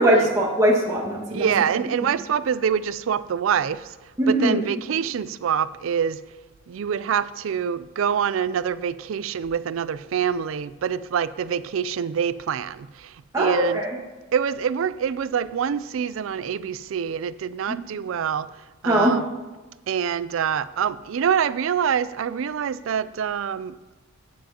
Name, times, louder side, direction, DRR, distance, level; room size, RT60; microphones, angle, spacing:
voice 1, 0.0-1.5 4.2-4.6 13.3-13.9 17.7-17.8 18.8-19.1, right 1 dB, 15° right, 1.7 m, -20 dB
voice 2, 1.3-3.9 4.3-6.2 6.7-13.8 14.3-18.5 18.8-19.3 19.9-23.7, right 7 dB, 80° right, 0.4 m, -25 dB
14.5 x 9.3 x 2.9 m
head